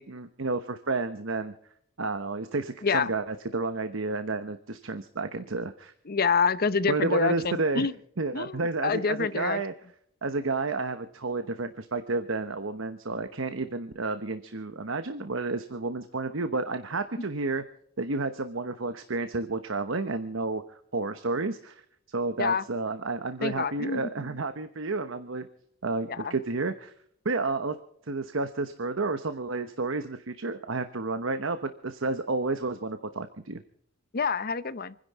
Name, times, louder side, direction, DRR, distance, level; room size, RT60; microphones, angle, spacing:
voice 1, 0.0-1.5 2.0-5.9 6.9-7.9 8.2-9.7 10.2-17.6 18.0-20.6 20.9-21.8 22.1-25.5 25.8-26.9 27.2-27.8 28.1-33.6, right 3 dB, 70° right, 10 dB, 1.0 m, -31 dB
voice 2, 6.1-7.9 8.3-9.6 22.4-22.6 23.4-24.0 26.1-26.3 34.1-35.0, left 5 dB, 50° left, 15 dB, 0.8 m, -27 dB
28.0 x 10.5 x 4.2 m, 0.68 s
head